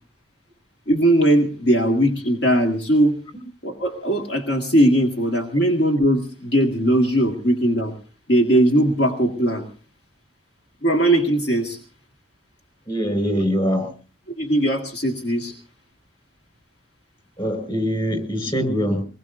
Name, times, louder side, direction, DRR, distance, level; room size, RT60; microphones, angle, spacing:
voice 1, 0.9-3.2 3.6-7.9 8.3-9.6 10.8-11.8 14.4-15.5, right 1 dB, 65° left, 1 dB, 1.9 m, -19 dB
voice 2, 12.9-13.9 17.4-19.0, equal, 30° left, 8 dB, 5.2 m, -23 dB
24.0 x 20.5 x 2.6 m, 0.39 s
head